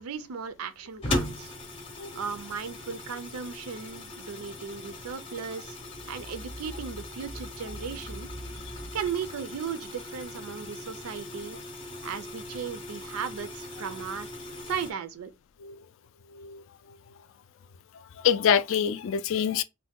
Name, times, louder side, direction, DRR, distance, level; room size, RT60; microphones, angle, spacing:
voice 1, 0.0-1.5 2.1-5.8 6.1-8.3 8.9-11.6 12.0-14.3 14.7-15.3, right 6 dB, 85° right, 0.4 m, -36 dB
sound 1, 1.0-14.9, left 1 dB, 25° left, 0.6 m, -39 dB
sound 2, 5.8-9.3, equal, 20° right, 0.4 m, -44 dB
voice 2, 16.3-17.0 17.9-19.6, left 8 dB, 65° left, 0.3 m, -26 dB
2.7 x 2.2 x 3.5 m
head